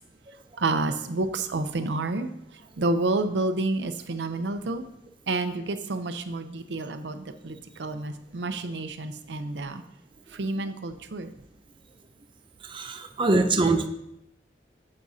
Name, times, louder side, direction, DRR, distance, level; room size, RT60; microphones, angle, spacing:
voice 1, 0.6-2.3 2.8-4.9 5.3-9.8 10.3-11.3, right 2 dB, 85° right, 9 dB, 0.6 m, -29 dB
voice 2, 12.6-13.9, right 2 dB, 30° right, 6 dB, 0.5 m, -23 dB
9.6 x 7.6 x 2.7 m, 0.80 s
head